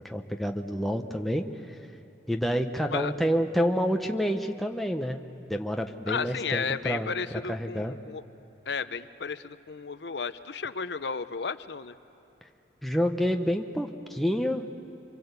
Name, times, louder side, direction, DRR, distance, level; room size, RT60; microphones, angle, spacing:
voice 1, 0.0-1.7 2.3-5.2 5.5-7.1 7.5-8.0 12.8-14.6, equal, ahead, 3 dB, 0.9 m, -28 dB
voice 2, 6.1-8.2 8.7-11.9, left 5 dB, 70° left, 13 dB, 0.7 m, -33 dB
26.0 x 24.5 x 8.2 m, 2.9 s
head